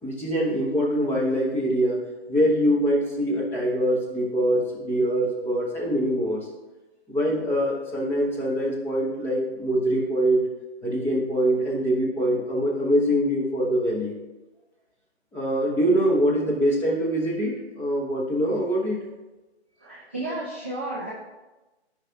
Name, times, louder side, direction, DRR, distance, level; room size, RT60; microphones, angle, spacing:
voice 1, 0.0-2.0 2.3-6.5 7.1-10.4 10.8-14.1 15.3-19.0, equal, 5° left, -5 dB, 1.1 m, -24 dB
voice 2, 19.8-21.1, right 2 dB, 10° right, -9 dB, 0.4 m, -32 dB
14.0 x 5.0 x 2.9 m, 1.1 s
hypercardioid pair, 150°, 33 cm